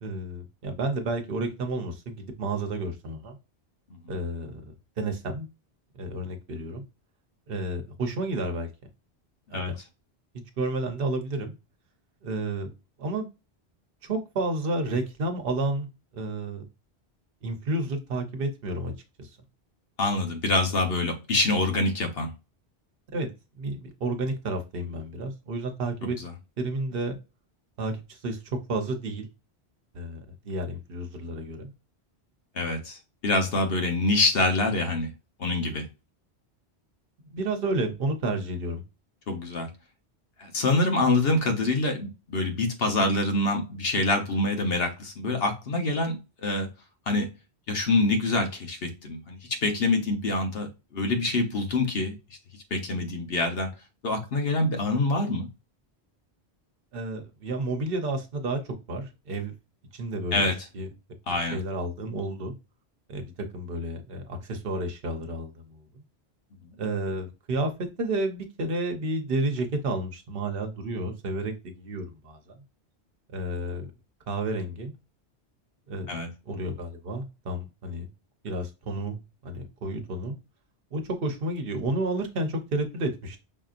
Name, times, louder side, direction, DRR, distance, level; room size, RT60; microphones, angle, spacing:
voice 1, 0.0-3.4 4.1-5.5 5.9-6.8 7.5-8.7 9.5-9.8 10.6-11.6 12.2-12.7 13.0-13.3 14.0-15.9 16.1-16.6 17.4-18.9 19.2-19.3 23.1-23.3 23.6-26.2 26.6-27.2 27.8-29.3 29.9-31.7 37.2-38.8 56.9-59.5 59.9-60.9 61.3-62.5 63.1-66.0 66.8-72.5 73.3-73.9 74.3-74.9 75.9-76.1 76.5-78.1 78.4-80.4 80.9-83.4, right 2 dB, 60° right, 1.0 m, -31 dB
voice 2, 20.0-22.3 26.2-26.3 32.6-33.0 33.2-35.1 35.4-35.9 39.3-39.7 40.4-46.7 47.1-47.3 47.7-52.1 52.7-53.7 54.0-55.5 60.3-60.6 61.3-61.6 76.1-76.3, left 2 dB, 60° left, 1.2 m, -25 dB
5.7 x 2.7 x 2.5 m
omnidirectional pair, 1.1 m